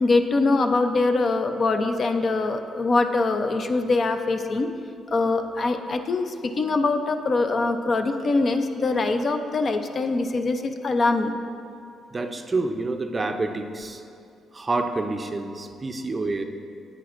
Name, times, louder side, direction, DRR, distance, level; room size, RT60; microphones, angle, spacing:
voice 1, 0.0-4.7 5.1-11.4, left 3 dB, 45° left, 7 dB, 0.5 m, -23 dB
voice 2, 12.1-14.0 14.5-16.4, right 3 dB, 30° right, 6 dB, 0.5 m, -28 dB
10.0 x 8.0 x 2.5 m, 2.4 s
cardioid pair, 90°, 0 cm